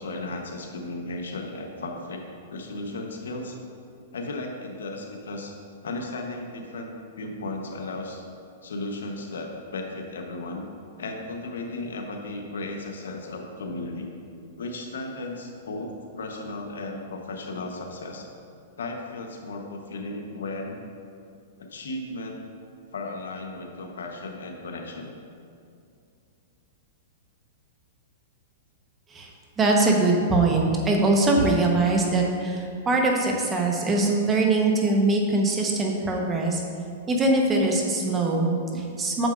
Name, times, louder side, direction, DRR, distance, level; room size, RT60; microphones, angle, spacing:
voice 1, 0.0-2.3 2.5-3.6 4.1-5.5 5.8-6.9 7.2-8.2 8.6-10.6 11.0-14.2 14.6-18.3 18.8-20.8 21.6-22.4 22.9-25.2 38.7-38.8, left 2 dB, 90° left, 2 dB, 1.0 m, -35 dB
voice 2, 29.6-36.6 37.1-38.6 39.0-39.3, right 2 dB, 20° right, 0 dB, 1.1 m, -22 dB
9.1 x 6.9 x 2.6 m, 2.4 s
hypercardioid pair, 135°, 0 cm